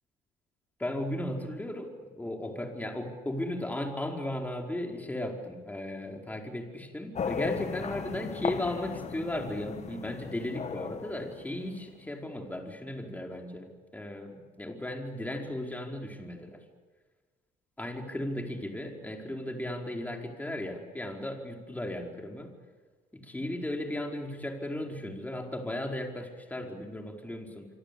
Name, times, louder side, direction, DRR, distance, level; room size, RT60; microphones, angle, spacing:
voice 1, 0.8-16.6 17.8-22.5 23.1-27.7, left 1 dB, 10° left, 2 dB, 4.9 m, -36 dB
sound 1, 7.1-12.0, left 6 dB, 40° left, 1.5 m, -37 dB
26.0 x 26.0 x 8.6 m, 1.4 s
cardioid pair, 110°, 17 cm